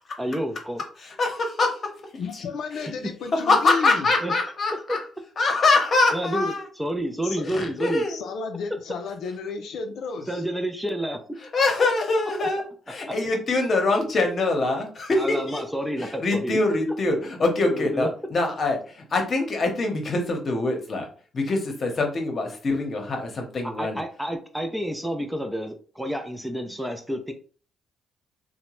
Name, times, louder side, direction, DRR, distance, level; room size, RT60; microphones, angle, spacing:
voice 1, 0.2-0.8 4.2-4.3 4.9-5.0 6.1-8.0 10.3-11.2 13.1-13.2 15.2-16.6 17.6-18.1 23.6-27.3, equal, 5° right, 0.4 m, -29 dB
voice 2, 1.0-1.8 2.1-2.4 2.7-2.9 3.4-5.0 5.4-6.6 7.5-8.2 11.5-15.6 16.0-21.1 21.3-24.0, left 3 dB, 45° left, 0.9 m, -24 dB
voice 3, 2.2-4.1 7.2-7.5 8.1-10.3, left 5 dB, 75° left, 0.4 m, -32 dB
2.7 x 2.1 x 3.0 m
cardioid pair, 90°, 0 cm